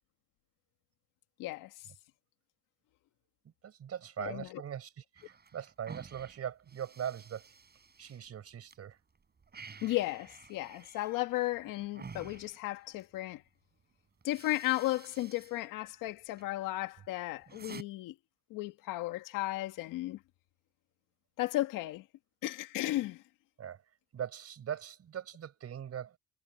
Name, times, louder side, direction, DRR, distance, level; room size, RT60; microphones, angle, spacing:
voice 1, 1.4-1.9 4.2-4.6 9.8-13.4 14.2-18.2 18.5-20.2 21.4-22.0 22.4-23.2, left 17 dB, 75° left, 1.8 m, -35 dB
voice 2, 3.6-7.5 8.0-9.0 23.6-23.8 24.1-26.2, right 9 dB, 50° right, 5.1 m, -41 dB
sound 1, 5.2-8.8 9.1-13.2 13.8-13.9 14.2-15.6 15.9-16.5 16.9-17.8, right 5 dB, 30° right, 6.1 m, -52 dB
supercardioid pair, 95°, 32 cm